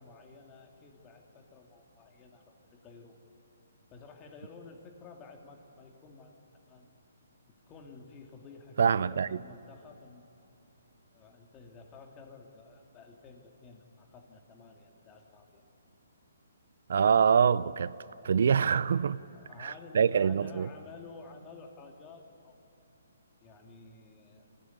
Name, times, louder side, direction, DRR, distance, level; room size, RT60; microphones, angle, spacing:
voice 1, 0.0-3.2 3.9-6.9 7.7-10.3 11.1-15.6 19.2-22.7 23.4-24.5, left 4 dB, 20° left, 2.5 m, -52 dB
voice 2, 8.8-9.3 16.9-17.9 18.2-19.2 19.6-20.7, right 7 dB, 65° right, 0.5 m, -25 dB
26.0 x 15.5 x 9.6 m
hypercardioid pair, 150°, 0 cm